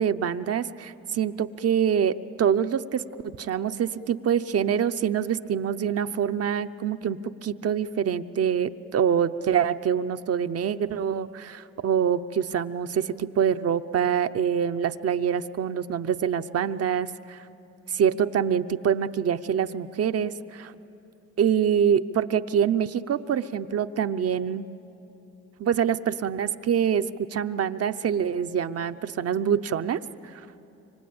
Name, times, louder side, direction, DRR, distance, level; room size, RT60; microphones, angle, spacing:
voice 1, 0.0-3.0 3.4-17.4 17.9-20.7 21.4-24.7 25.6-30.0 30.3-30.4, right 8 dB, 55° right, 10 dB, 0.8 m, -25 dB
26.0 x 24.5 x 8.8 m, 2.9 s
cardioid pair, 90°, 30 cm